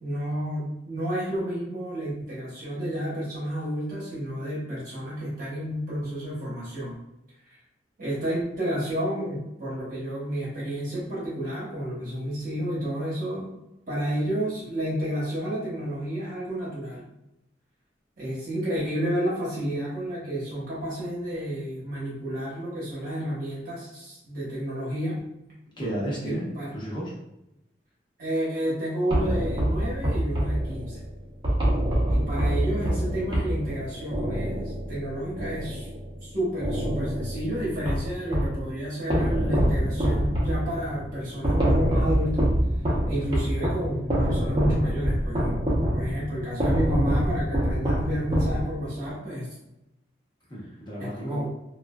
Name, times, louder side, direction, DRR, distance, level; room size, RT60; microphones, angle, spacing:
voice 1, 0.0-7.0 8.0-13.5 13.9-17.0 18.2-25.2 26.5-26.7 28.2-31.0 32.1-35.9 36.2-42.5 43.1-45.7 45.9-49.5 51.2-51.5, equal, 50° right, -8 dB, 1.0 m, -31 dB
voice 2, 25.8-27.1 50.5-51.5, right 1 dB, 25° left, -5 dB, 0.9 m, -33 dB
sound 1, 29.1-36.2 36.6-38.6 39.1-49.0, equal, 30° right, 0.8 m, -26 dB
3.2 x 2.4 x 2.3 m, 0.89 s
head